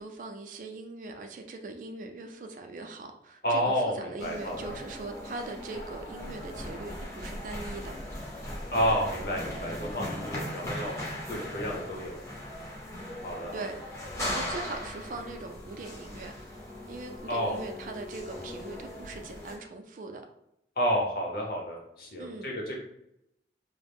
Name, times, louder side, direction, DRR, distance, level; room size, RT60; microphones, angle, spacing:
voice 1, 0.0-8.0 13.5-13.9 14.2-16.3 16.9-20.2 22.2-22.5, right 3 dB, 45° right, 5 dB, 0.3 m, -41 dB
voice 2, 3.4-4.7 8.7-10.9 11.3-12.2 13.2-13.6 17.3-17.6 20.8-22.8, equal, 55° left, -1 dB, 0.7 m, -30 dB
sound 1, 4.2-19.6, left 1 dB, 15° left, 0.5 m, -39 dB
2.3 x 2.0 x 3.3 m, 0.81 s
head